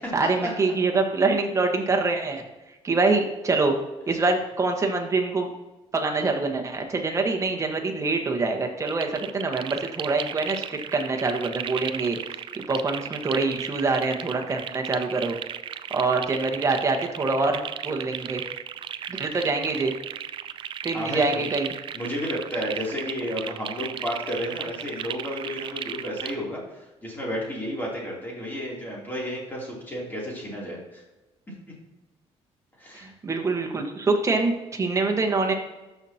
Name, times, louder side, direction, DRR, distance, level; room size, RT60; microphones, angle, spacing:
voice 1, 0.1-2.4 2.8-3.7 4.1-5.5 5.9-12.2 12.7-15.4 15.9-18.4 19.1-19.9 20.8-21.7 32.9-35.5, right 3 dB, 25° right, 2 dB, 1.4 m, -25 dB
sound 1, 8.8-26.4, right 9 dB, 50° right, 0.4 m, -35 dB
voice 2, 20.9-21.4 21.9-31.0 32.8-33.1, equal, 15° left, -4 dB, 3.1 m, -32 dB
13.0 x 5.7 x 2.9 m, 1.1 s
cardioid pair, 120°, 11 cm